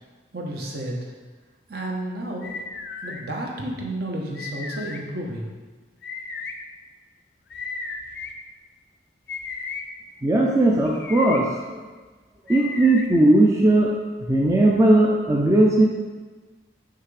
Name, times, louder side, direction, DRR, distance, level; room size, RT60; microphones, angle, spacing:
voice 1, 0.3-1.1 1.7-2.6 3.0-5.5, right 1 dB, 55° right, -1 dB, 1.0 m, -31 dB
sound 1, 2.4-3.2 4.3-5.0 6.0-6.5 7.5-8.3 9.3-9.8 10.9-11.4 12.5-13.1, left 4 dB, 60° left, 0.5 m, -34 dB
voice 2, 10.2-11.8 12.5-13.9 14.3-15.8, right 1 dB, 15° right, -3 dB, 0.4 m, -18 dB
5.8 x 5.7 x 3.3 m, 1.3 s
head